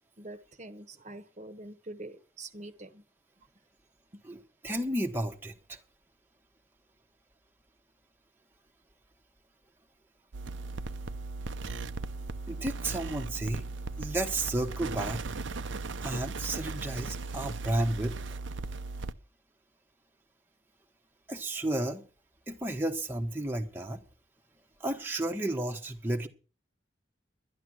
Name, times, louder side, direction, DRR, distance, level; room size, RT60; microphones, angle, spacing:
voice 1, 0.2-3.0 4.1-4.2, right 2 dB, 35° right, 1.1 m, -45 dB
voice 2, 4.2-5.8 12.5-13.6 14.0-15.2 16.0-18.1 21.3-22.0 22.5-24.0 24.8-26.3, right 1 dB, 10° right, 1.1 m, -32 dB
sound 1, 10.3-19.1, right 3 dB, 80° right, 0.7 m, -37 dB
12.0 x 11.5 x 6.2 m
head